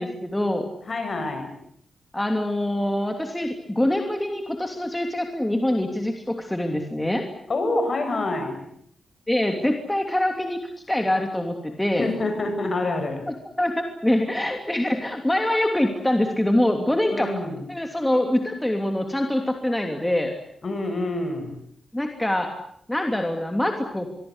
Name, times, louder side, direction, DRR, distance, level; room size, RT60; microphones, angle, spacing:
voice 1, 0.0-0.6 2.1-7.3 9.3-10.6 10.9-12.1 13.6-17.4 17.7-20.3 21.9-22.5 22.9-24.1, left 1 dB, 10° left, 3 dB, 3.0 m, -24 dB
voice 2, 0.9-1.5 7.5-8.6 12.0-13.3 14.2-14.3 17.1-17.6 20.6-21.5, left 2 dB, 45° left, 6 dB, 7.9 m, -27 dB
24.5 x 24.0 x 8.1 m, 0.69 s
cardioid pair, 90°, 0 cm